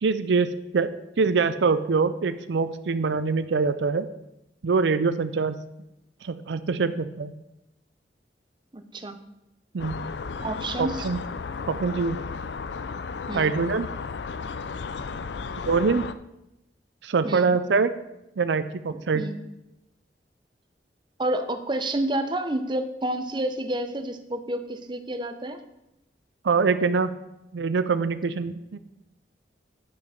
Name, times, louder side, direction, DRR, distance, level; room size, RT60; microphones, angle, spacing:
voice 1, 0.0-4.1 4.6-5.6 6.2-7.3 9.7-10.0 10.8-11.2 11.7-12.2 13.3-13.9 15.7-16.1 17.0-17.9 18.4-19.2 26.4-27.1 27.5-28.8, right 4 dB, 85° right, 12 dB, 0.5 m, -24 dB
voice 2, 8.7-9.2 10.4-11.1 13.3-13.5 17.2-17.5 19.1-19.4 21.2-25.6, right 1 dB, 25° right, 7 dB, 0.8 m, -29 dB
sound 1, 9.8-16.1, left 5 dB, 80° left, 0.5 m, -34 dB
10.0 x 5.9 x 5.8 m, 0.90 s
head